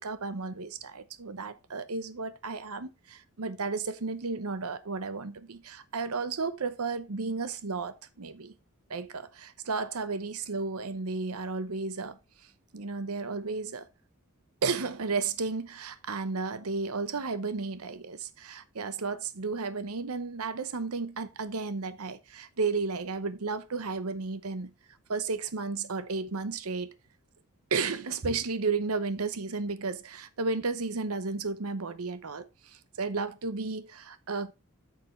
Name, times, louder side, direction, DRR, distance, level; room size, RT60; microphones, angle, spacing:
voice 1, 0.0-8.5 8.9-12.2 12.7-13.9 14.6-24.7 25.1-26.9 27.7-34.5, right 4 dB, 90° right, 0.9 m, -33 dB
8.4 x 6.7 x 3.2 m
head